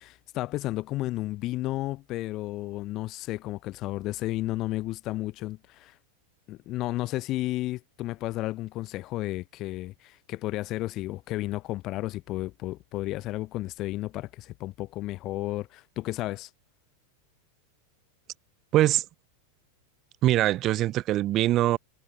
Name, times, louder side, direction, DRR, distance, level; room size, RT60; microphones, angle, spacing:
voice 1, 0.0-5.9 6.5-16.5, left 17 dB, 35° left, 0.6 m, -32 dB
voice 2, 18.7-19.0 20.2-21.8, right 14 dB, 35° right, 0.8 m, -22 dB
figure-of-eight pair, 90°, 0 cm